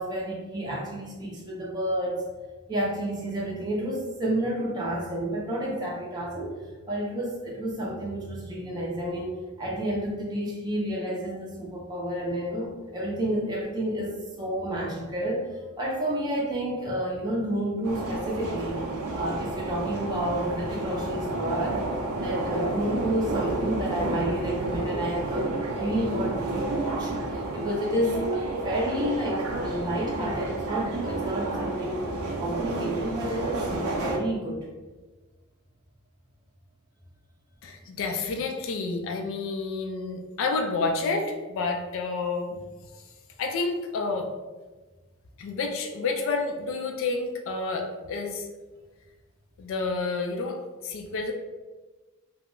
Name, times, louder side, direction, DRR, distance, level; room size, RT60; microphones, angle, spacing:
voice 1, 0.0-2.3 2.7-6.5 6.9-15.5 15.8-18.8 19.1-21.8 22.2-32.1 32.4-34.7, right 1 dB, 20° right, -5 dB, 0.5 m, -30 dB
sound 1, 17.8-34.2, right 2 dB, 80° right, 0.4 m, -30 dB
voice 2, 37.6-42.6 43.4-44.3 45.4-48.5 49.6-50.6 50.8-51.3, left 3 dB, 65° left, 3 dB, 0.3 m, -29 dB
2.2 x 2.0 x 3.6 m, 1.2 s
head